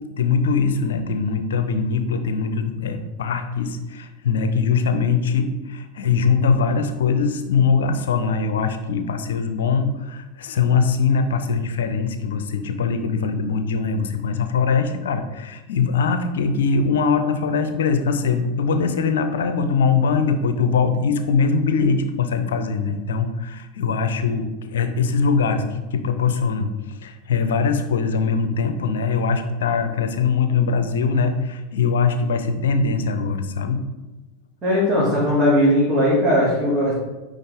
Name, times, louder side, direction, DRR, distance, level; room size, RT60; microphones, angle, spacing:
voice 1, 0.2-33.8, left 5 dB, 65° left, 9 dB, 0.6 m, -22 dB
voice 2, 34.6-36.9, equal, 15° right, -9 dB, 2.4 m, -18 dB
9.4 x 3.7 x 3.6 m, 1.1 s
figure-of-eight pair, 85°, 0 cm